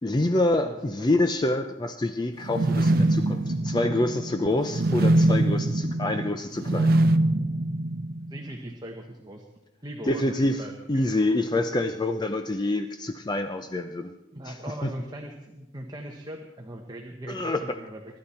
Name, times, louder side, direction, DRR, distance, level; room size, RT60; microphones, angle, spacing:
voice 1, 0.0-6.9 10.0-14.1 14.4-14.9 17.3-17.8, left 2 dB, 20° left, 8 dB, 0.5 m, -27 dB
sound 1, 2.4-8.5, right 1 dB, 50° right, 0.7 m, -24 dB
voice 2, 8.3-9.5 9.8-11.1 11.5-11.8 14.3-18.2, right 1 dB, 20° right, 2 dB, 1.1 m, -40 dB
23.5 x 11.5 x 4.3 m, 1.0 s
head